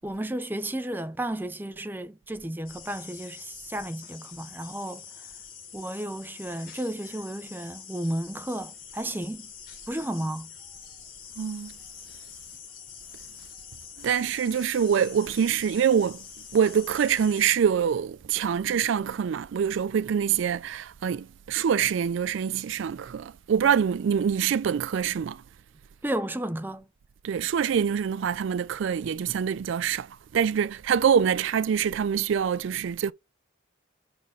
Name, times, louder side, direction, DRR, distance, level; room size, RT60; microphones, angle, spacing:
voice 1, 0.0-5.0 5.7-9.5 9.9-10.5 26.0-26.8, right 1 dB, 10° right, 0.6 m, -33 dB
sound 1, 2.6-17.6, left 7 dB, 45° left, 3.4 m, -45 dB
voice 2, 11.4-11.7 14.0-16.2 16.5-25.4 27.2-33.1, right 7 dB, 75° right, 0.3 m, -25 dB
6.0 x 4.4 x 5.4 m
head